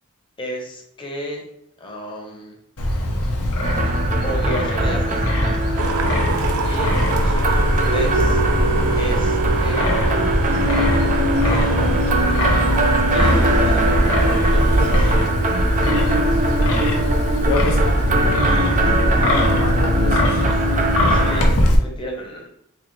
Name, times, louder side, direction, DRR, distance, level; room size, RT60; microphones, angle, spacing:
voice 1, 0.4-1.4 1.8-2.6 4.2-5.2 6.6-8.4 9.0-10.0 11.4-12.5 13.0-15.1 21.1-22.5, right 1 dB, 25° left, 0 dB, 0.9 m, -32 dB
Wind, 2.8-21.8, left 1 dB, 85° left, 0.8 m, -20 dB
sound 1, 3.6-21.5, right 2 dB, 35° right, 0.5 m, -23 dB
sound 2, 5.8-15.3, right 2 dB, 90° right, 0.5 m, -25 dB
voice 2, 17.5-18.6 18.8-20.2, left 3 dB, 60° left, 2 dB, 0.4 m, -27 dB
4.0 x 2.7 x 3.1 m, 0.77 s
head